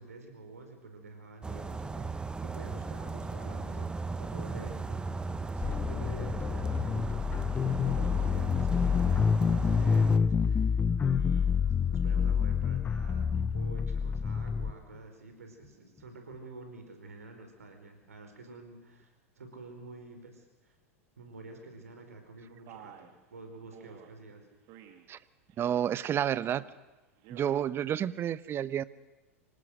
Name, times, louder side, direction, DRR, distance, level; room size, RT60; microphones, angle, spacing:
voice 1, 0.0-3.9 4.2-5.0 5.5-11.5 11.9-20.8 21.2-24.5, right 3 dB, 80° right, 5 dB, 4.7 m, -49 dB
sound 1, 1.4-10.2, right 3 dB, 10° right, 1.1 m, -37 dB
sound 2, 5.6-14.7, left 6 dB, 20° left, 0.6 m, -27 dB
Male speech man speaking, 22.7-23.1 23.7-24.1 24.7-25.1 25.5-25.9 26.3-26.8 27.2-27.6, right 10 dB, 50° right, 2.6 m, -51 dB
voice 2, 25.6-26.6 27.3-28.8, right 10 dB, 30° right, 18 dB, 0.8 m, -30 dB
26.0 x 18.5 x 6.4 m, 1.1 s
hypercardioid pair, 95°, 8 cm